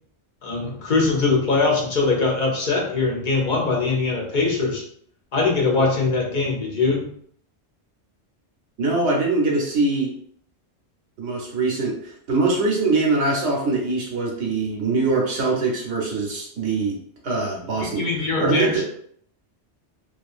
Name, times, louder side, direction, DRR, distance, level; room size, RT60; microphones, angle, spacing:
voice 1, 0.4-4.8 5.3-7.1 17.8-18.8, left 3 dB, 50° left, -1 dB, 0.7 m, -22 dB
voice 2, 8.8-10.1 11.2-17.0 17.2-18.8, right 3 dB, 75° right, -2 dB, 1.1 m, -23 dB
2.7 x 2.4 x 2.4 m, 0.63 s
omnidirectional pair, 1.2 m